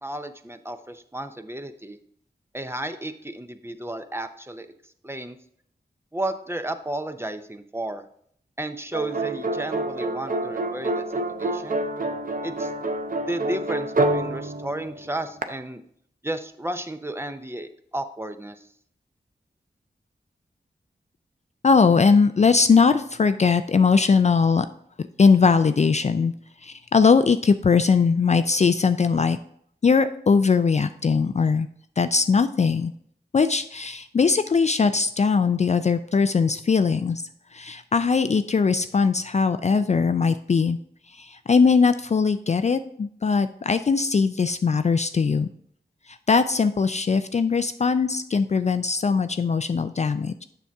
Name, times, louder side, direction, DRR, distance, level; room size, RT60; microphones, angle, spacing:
voice 1, 0.0-2.0 2.5-4.7 5.0-5.4 6.1-8.0 8.6-11.8 12.4-12.7 13.3-15.8 16.2-18.6, right 1 dB, 15° right, 9 dB, 0.6 m, -33 dB
sound 1, 8.9-15.4, right 2 dB, 50° right, 0.7 m, -27 dB
voice 2, 21.6-24.7 25.2-26.3 26.6-29.4 29.8-31.7 32.0-32.9 33.3-37.2 37.5-40.8 41.1-45.5 46.1-50.4, left 5 dB, 40° left, 11 dB, 0.4 m, -20 dB
7.0 x 6.0 x 3.5 m, 0.66 s
cardioid pair, 40°, 18 cm